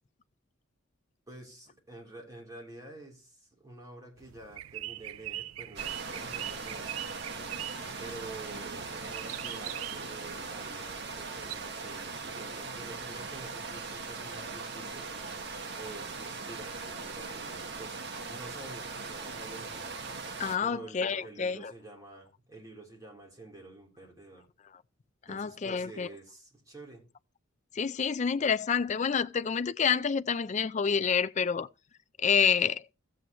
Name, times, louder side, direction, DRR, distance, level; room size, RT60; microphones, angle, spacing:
voice 1, 1.3-6.9 8.0-15.1 15.8-19.9 20.6-24.5 25.3-27.1, right 2 dB, 15° right, 3.5 m, -48 dB
sound 1, 4.2-11.6, right 14 dB, 85° right, 0.4 m, -42 dB
sound 2, 5.8-20.6, right 4 dB, 55° right, 1.3 m, -40 dB
voice 2, 20.4-21.7 25.3-26.1 27.7-31.7 32.2-32.8, left 6 dB, 35° left, 0.4 m, -28 dB
14.0 x 7.8 x 3.0 m
head